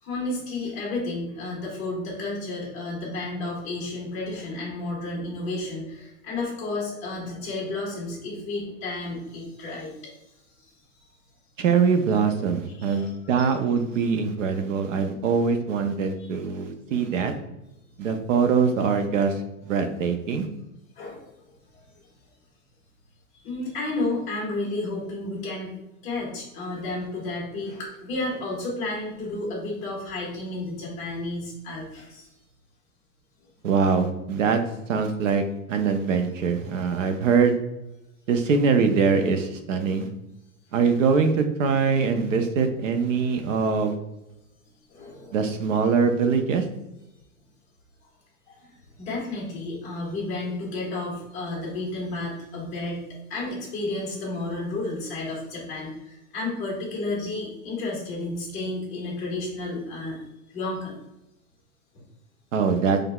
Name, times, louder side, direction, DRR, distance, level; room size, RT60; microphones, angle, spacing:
voice 1, 0.0-10.1 10.6-10.7 12.8-13.5 16.2-16.3 20.9-21.3 21.7-21.9 23.4-25.7 26.0-32.3 44.9-45.3 48.5-53.0 53.3-60.2 60.5-61.0, left 2 dB, 15° left, -4 dB, 1.2 m, -32 dB
voice 2, 11.6-17.3 18.0-20.5 33.6-34.6 34.9-35.4 35.7-37.5 38.3-40.1 40.7-44.0 45.3-46.6 62.5-63.0, right 5 dB, 60° right, 7 dB, 0.6 m, -23 dB
5.6 x 3.3 x 2.3 m, 0.92 s
supercardioid pair, 175°, 43 cm